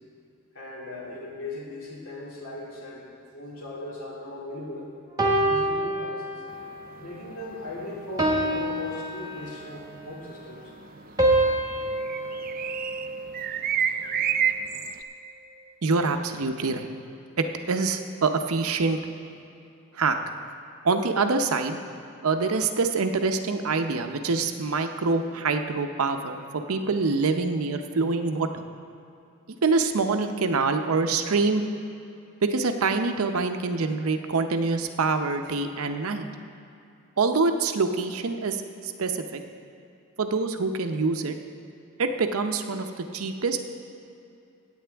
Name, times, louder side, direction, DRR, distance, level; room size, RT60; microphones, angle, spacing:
voice 1, 0.5-3.0 3.3-4.9 5.2-6.4 7.0-10.7, left 1 dB, 80° left, -4 dB, 2.5 m, -38 dB
sound 1, 5.2-6.7 7.2-7.5 8.2-9.8 11.2-13.6, right 1 dB, 15° right, 1.1 m, -27 dB
sound 2, 6.5-15.0, right 8 dB, 40° right, 0.3 m, -31 dB
voice 2, 15.8-16.9 17.4-19.0 19.9-20.2 20.8-21.8 22.2-28.6 29.6-31.6 32.4-36.3 37.2-39.4 40.2-41.3 42.0-43.6, right 4 dB, 80° right, 7 dB, 0.7 m, -25 dB
16.5 x 8.6 x 3.4 m, 2.6 s
head